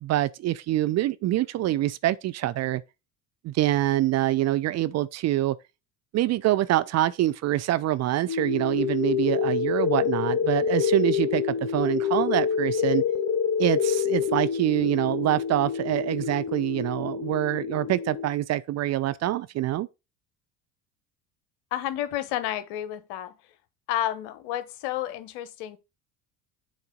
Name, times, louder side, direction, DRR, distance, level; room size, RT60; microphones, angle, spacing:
voice 1, 0.0-2.8 3.4-5.6 6.1-13.0 13.6-19.9, right 14 dB, 40° right, 0.5 m, -25 dB
sound 1, 8.3-18.3, left 7 dB, 35° left, 1.8 m, -27 dB
voice 2, 21.7-23.3 23.9-25.8, left 12 dB, 60° left, 1.2 m, -30 dB
7.1 x 3.9 x 5.1 m
hypercardioid pair, 70°, 44 cm